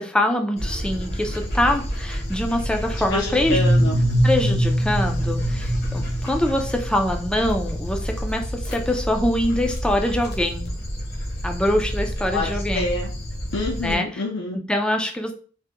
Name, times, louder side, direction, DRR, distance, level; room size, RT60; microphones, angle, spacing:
voice 1, 0.0-3.6 4.2-10.7 11.4-12.9 13.8-14.2 14.7-15.3, left 1 dB, 5° left, 3 dB, 0.3 m, -24 dB
Dog, 0.6-13.9, equal, 55° left, 0.9 m, -29 dB
voice 2, 3.1-4.0 12.3-13.1 13.5-14.6, left 2 dB, 75° left, -1 dB, 0.5 m, -27 dB
sound 1, 3.4-7.1, equal, 60° right, 0.4 m, -22 dB
3.3 x 2.1 x 2.8 m, 0.41 s
head